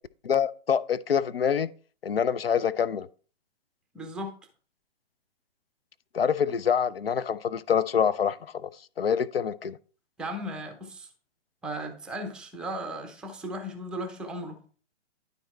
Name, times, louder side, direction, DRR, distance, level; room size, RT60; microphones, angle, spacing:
voice 1, 0.2-1.7 2.0-3.1 6.1-8.7 9.0-9.8, left 7 dB, 60° left, 0.6 m, -26 dB
voice 2, 3.9-4.3 10.2-11.1 11.6-14.6, right 1 dB, 5° right, 0.6 m, -36 dB
11.5 x 4.0 x 4.3 m
figure-of-eight pair, 125°, 33 cm